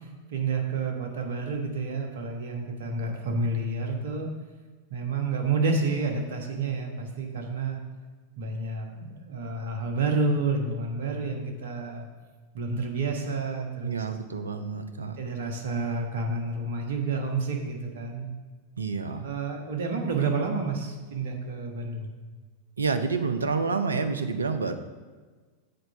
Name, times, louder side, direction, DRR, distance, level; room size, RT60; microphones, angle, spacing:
voice 1, 0.3-4.3 4.9-7.8 8.4-12.1 12.5-13.9 15.2-18.3 19.2-22.1, right 3 dB, 55° right, 3 dB, 1.2 m, -29 dB
voice 2, 13.8-15.2 18.8-19.3 22.8-24.7, right 4 dB, 75° right, 8 dB, 0.6 m, -28 dB
6.6 x 4.6 x 6.7 m, 1.4 s
figure-of-eight pair, 90°, 0 cm